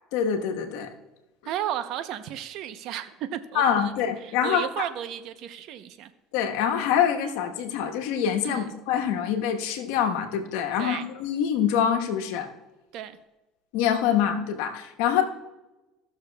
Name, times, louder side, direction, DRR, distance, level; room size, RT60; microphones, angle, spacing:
voice 1, 0.1-0.9 3.5-4.7 6.3-12.5 13.7-15.2, left 8 dB, 80° left, 4 dB, 1.1 m, -25 dB
voice 2, 1.5-3.9 4.2-6.1 8.4-8.7 10.8-11.1 12.9-13.2, right 11 dB, 65° right, 11 dB, 0.7 m, -34 dB
16.0 x 6.5 x 2.3 m, 1.1 s
supercardioid pair, 90°, 0 cm